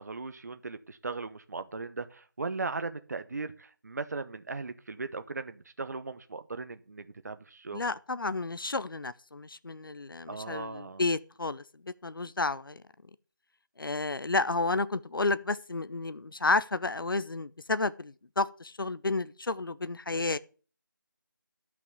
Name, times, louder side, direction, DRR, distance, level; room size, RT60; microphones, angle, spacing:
voice 1, 0.0-7.9 10.3-11.0, right 3 dB, 50° right, 0.9 m, -38 dB
voice 2, 7.7-12.8 13.8-20.4, left 3 dB, 85° left, 0.7 m, -31 dB
11.0 x 6.0 x 7.9 m
figure-of-eight pair, 170°, 11 cm